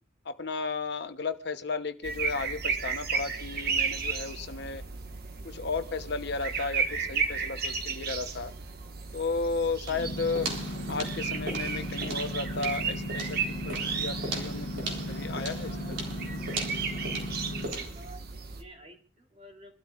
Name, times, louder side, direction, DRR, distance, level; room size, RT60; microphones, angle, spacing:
voice 1, 0.2-4.8 5.4-8.5 9.1-10.5 10.9-15.9, left 4 dB, 65° left, 9 dB, 1.0 m, -34 dB
sound 1, 2.0-18.6, right 5 dB, 55° right, 1.5 m, -34 dB
voice 2, 9.8-10.3 17.5-19.7, equal, 35° right, 1 dB, 3.3 m, -52 dB
sound 2, 9.8-18.0, right 2 dB, 70° right, 4.0 m, -39 dB
sound 3, 10.0-17.7, left 1 dB, 85° left, 1.7 m, -37 dB
27.0 x 13.0 x 2.5 m, 0.43 s
head